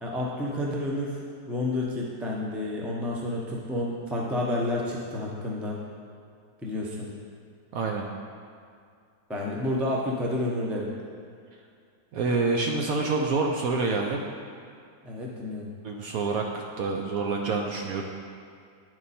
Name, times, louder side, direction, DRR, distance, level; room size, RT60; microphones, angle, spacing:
voice 1, 0.0-1.2 1.5-5.8 6.6-7.1 9.3-10.9 15.0-15.7, left 1 dB, ahead, -3 dB, 0.3 m, -30 dB
voice 2, 7.7-8.0 12.1-14.2 15.8-18.0, right 3 dB, 70° right, 1 dB, 0.9 m, -27 dB
10.0 x 4.6 x 4.2 m, 2.3 s
omnidirectional pair, 1.9 m